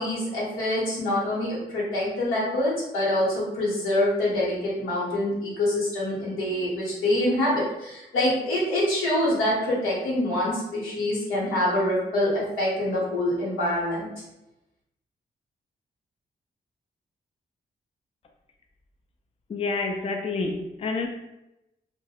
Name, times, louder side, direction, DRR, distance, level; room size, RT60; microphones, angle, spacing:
voice 1, 0.0-14.1, left 1 dB, 85° left, -6 dB, 0.9 m, -25 dB
voice 2, 19.5-21.1, left 3 dB, 30° left, 2 dB, 0.4 m, -28 dB
2.2 x 2.0 x 2.8 m, 0.91 s
supercardioid pair, 45°, 20 cm